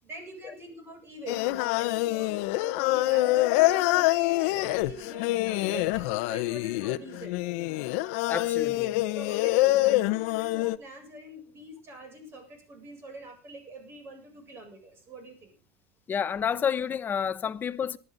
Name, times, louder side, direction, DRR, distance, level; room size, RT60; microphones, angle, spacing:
voice 1, 0.0-4.1 4.5-7.4 9.1-15.5, right 1 dB, 35° right, 8.0 m, -45 dB
Singing, 1.3-10.8, left 18 dB, 80° left, 0.9 m, -26 dB
voice 2, 8.3-9.0 16.1-18.0, left 7 dB, 25° left, 1.0 m, -29 dB
19.0 x 12.5 x 4.0 m
cardioid pair, 135°, 7 cm